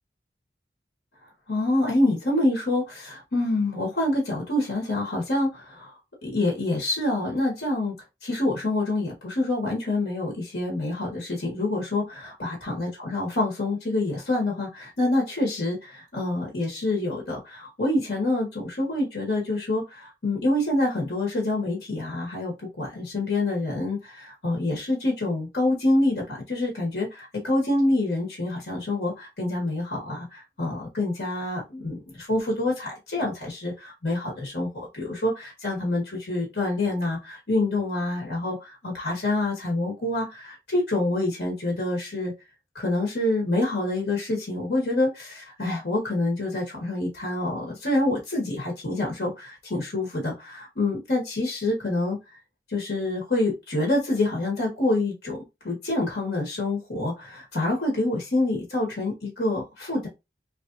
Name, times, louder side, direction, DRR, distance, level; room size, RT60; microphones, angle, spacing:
voice 1, 1.5-5.9 6.2-7.9 8.2-42.3 42.7-52.2 52.7-55.4 55.6-60.1, left 2 dB, 80° left, -1 dB, 1.3 m, -26 dB
3.1 x 2.6 x 2.5 m, 0.24 s
head